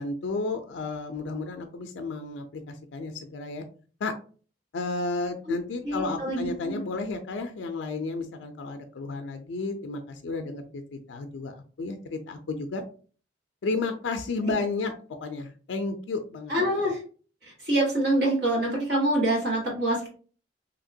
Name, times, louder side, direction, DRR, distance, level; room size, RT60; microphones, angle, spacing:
voice 1, 0.0-3.6 4.0-4.1 4.7-12.8 13.6-14.9 15.2-16.5, left 3 dB, 85° left, 6 dB, 0.4 m, -32 dB
voice 2, 5.8-6.8 14.4-14.5 16.5-17.0 17.4-20.1, right 1 dB, 60° right, -3 dB, 1.5 m, -26 dB
2.9 x 2.8 x 2.6 m, 0.40 s
head